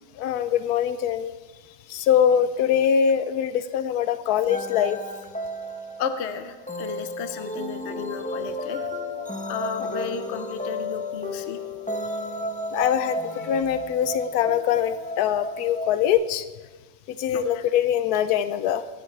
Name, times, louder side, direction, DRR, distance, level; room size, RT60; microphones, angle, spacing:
voice 1, 0.2-1.3 1.9-5.0 12.7-16.4 17.2-18.8, left 9 dB, 90° left, 12 dB, 1.1 m, -23 dB
voice 2, 1.5-2.0 6.0-8.9 9.5-11.6 12.1-12.2 17.3-17.6, left 7 dB, 55° left, 9 dB, 0.9 m, -34 dB
sound 1, 4.5-16.1, left 1 dB, 5° left, 0.7 m, -33 dB
23.0 x 11.0 x 3.3 m, 1.3 s
omnidirectional pair, 1.6 m